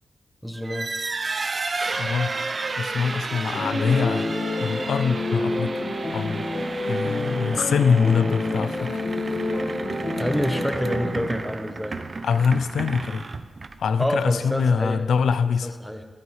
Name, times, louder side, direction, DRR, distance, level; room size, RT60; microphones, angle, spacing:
voice 1, 0.4-0.9 7.5-7.7 10.2-12.2 14.0-15.0 15.4-16.0, equal, 5° left, 5 dB, 0.9 m, -28 dB
sound 1, 0.6-14.0, right 3 dB, 40° right, 0.5 m, -32 dB
voice 2, 2.0-2.3 2.8-5.8 6.1-6.5 6.9-9.0 12.2-13.3 13.8-15.7, left 6 dB, 85° left, 13 dB, 0.4 m, -24 dB
sound 2, 3.5-11.1, left 2 dB, 45° left, 1.4 m, -28 dB
14.0 x 11.0 x 3.2 m, 1.5 s
wide cardioid pair, 95°, 0 cm